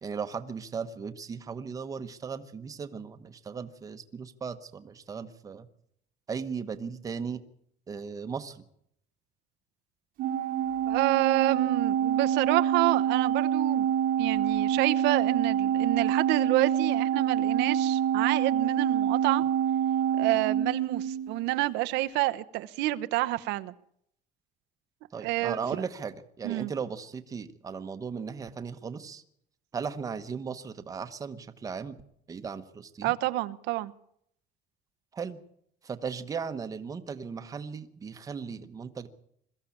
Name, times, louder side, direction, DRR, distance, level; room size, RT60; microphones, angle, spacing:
voice 1, 0.0-5.7 6.3-7.4 7.9-8.6 25.1-29.2 29.7-32.0 32.3-33.1 35.1-35.4 35.8-39.1, right 6 dB, 20° right, 9 dB, 1.1 m, -37 dB
Organ, 10.2-21.4, right 9 dB, 55° right, 1.3 m, -26 dB
voice 2, 10.9-13.9 14.2-19.4 20.1-23.7 25.2-25.8 26.4-26.7 33.0-33.9, right 17 dB, 90° right, 11 dB, 1.0 m, -28 dB
22.0 x 14.5 x 8.5 m, 0.71 s
cardioid pair, 175°, 17 cm